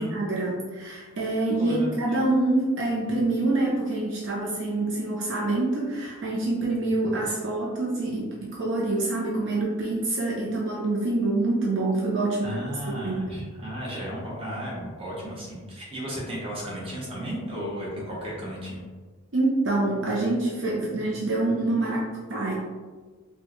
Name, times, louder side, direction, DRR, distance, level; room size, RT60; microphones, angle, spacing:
voice 1, 0.0-12.6 13.0-13.2 19.3-22.5, right 2 dB, 60° right, -4 dB, 0.5 m, -26 dB
voice 2, 1.6-2.0 12.4-18.8, equal, 25° right, -5 dB, 1.0 m, -34 dB
4.3 x 2.2 x 3.0 m, 1.4 s
head